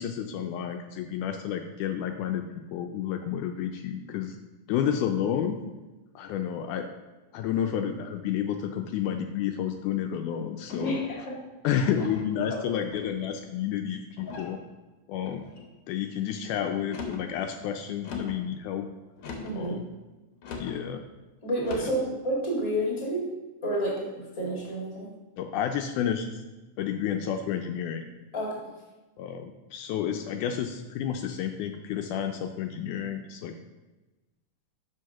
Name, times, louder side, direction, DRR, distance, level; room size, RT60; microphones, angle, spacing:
voice 1, 0.0-4.4 4.7-5.6 6.2-6.9 7.3-11.0 11.6-14.6 15.1-15.4 15.9-18.9 19.5-19.9 20.6-21.0 25.4-26.4 26.8-28.0 29.2-33.5, left 9 dB, 80° left, 5 dB, 1.9 m, -30 dB
sound 1, 10.7-11.2 11.8-12.3 12.9-13.4 14.2-14.6 15.2-15.7 16.8-17.3 18.0-18.4 19.2-19.6 20.4-20.8 21.6-22.0, left 4 dB, 60° left, 1.6 m, -39 dB
voice 2, 19.4-19.8 21.4-23.2 23.6-25.1 28.3-28.5, right 1 dB, 10° left, -4 dB, 1.5 m, -29 dB
6.3 x 4.7 x 5.7 m, 1.1 s
omnidirectional pair, 3.7 m